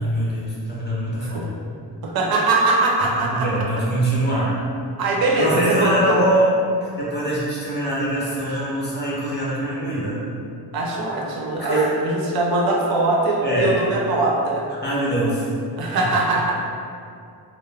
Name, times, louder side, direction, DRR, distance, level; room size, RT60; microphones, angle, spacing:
voice 1, 0.0-1.5 3.3-4.6 5.4-6.5 6.8-10.2 11.6-11.9 13.4-13.7 14.8-15.5 16.0-16.1, right 1 dB, 25° left, -7 dB, 0.5 m, -23 dB
voice 2, 2.0-3.5 5.0-6.2 10.7-14.6 15.8-16.7, right 2 dB, 65° right, -2 dB, 0.5 m, -21 dB
2.2 x 2.1 x 3.2 m, 2.4 s
wide cardioid pair, 160°, 40 cm